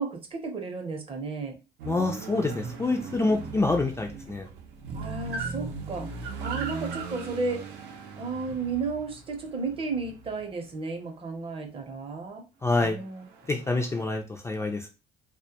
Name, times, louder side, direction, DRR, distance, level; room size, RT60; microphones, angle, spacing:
voice 1, 0.0-1.6 4.9-7.6 8.2-12.4 12.8-13.3, right 4 dB, 35° right, 3 dB, 0.6 m, -33 dB
sound 1, 1.8-10.7 13.1-14.0, right 4 dB, 85° right, 0.6 m, -38 dB
voice 2, 1.9-4.5 12.6-13.0 13.5-14.9, left 3 dB, 15° left, 2 dB, 0.3 m, -27 dB
2.1 x 2.1 x 2.8 m, 0.30 s
cardioid pair, 110°, 17 cm